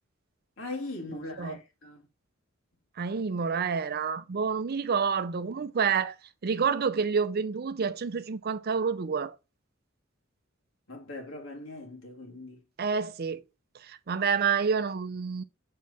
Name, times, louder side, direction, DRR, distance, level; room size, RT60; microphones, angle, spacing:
voice 1, 0.6-2.1 10.9-12.6, left 2 dB, 70° left, 2.0 m, -40 dB
voice 2, 3.0-6.2 6.4-9.4 12.8-13.4 13.8-15.4, right 6 dB, 50° right, 0.5 m, -28 dB
6.6 x 4.7 x 4.1 m
head